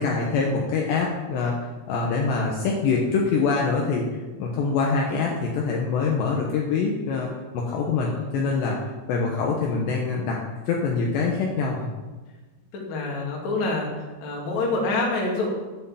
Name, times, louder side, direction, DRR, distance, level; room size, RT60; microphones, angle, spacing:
voice 1, 0.0-1.6 1.9-4.0 4.4-7.3 7.5-8.8 9.1-10.4 10.7-11.9, left 4 dB, 75° left, -1 dB, 2.9 m, -24 dB
voice 2, 7.9-8.3 9.2-9.4 12.7-13.9 14.2-15.5, left 3 dB, 45° left, -1 dB, 2.6 m, -27 dB
11.5 x 6.4 x 7.1 m, 1.2 s
omnidirectional pair, 5.8 m